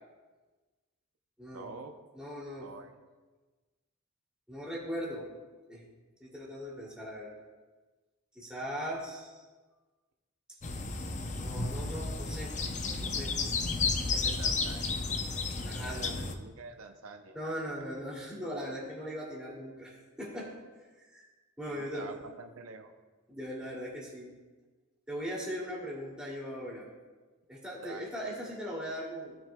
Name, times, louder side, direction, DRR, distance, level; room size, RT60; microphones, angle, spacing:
voice 1, 1.5-1.9 2.6-2.9 14.1-15.0 15.9-17.5 21.7-22.9 27.8-28.1, right 3 dB, 80° right, 6 dB, 0.6 m, -46 dB
voice 2, 2.1-2.7 4.5-5.2 5.7-5.8 6.2-7.3 8.3-9.4 11.3-12.5 13.0-13.3 15.6-16.2 17.3-20.5 21.0-21.3 21.6-22.1 23.3-24.3 25.1-26.9 27.5-29.4, equal, 5° right, -6 dB, 2.5 m, -39 dB
sound 1, 10.6-16.4, left 3 dB, 35° left, 0.6 m, -32 dB
16.5 x 6.1 x 2.2 m, 1.3 s
head